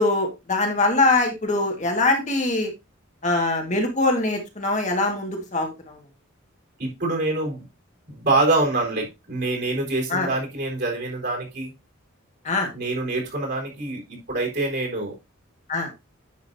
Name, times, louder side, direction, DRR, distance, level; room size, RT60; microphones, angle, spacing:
voice 1, 0.0-2.7 3.2-6.0 10.1-10.3 12.4-12.7 15.7-15.9, left 2 dB, 35° left, 2 dB, 1.6 m, -23 dB
voice 2, 6.8-7.6 8.1-11.7 12.7-15.1, right 2 dB, 55° right, 0 dB, 3.9 m, -25 dB
9.8 x 6.4 x 2.7 m, 0.24 s
head